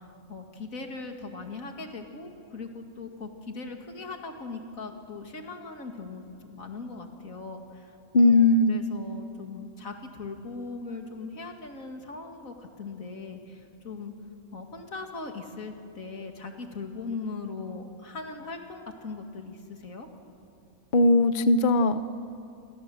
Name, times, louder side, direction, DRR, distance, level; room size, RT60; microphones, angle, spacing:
voice 1, 0.0-7.9 8.2-14.1 14.5-20.1, left 3 dB, 80° left, 4 dB, 2.7 m, -39 dB
voice 2, 8.1-8.8 20.9-22.1, left 2 dB, 45° left, 11 dB, 0.9 m, -19 dB
29.5 x 25.0 x 7.9 m, 2.6 s
omnidirectional pair, 1.4 m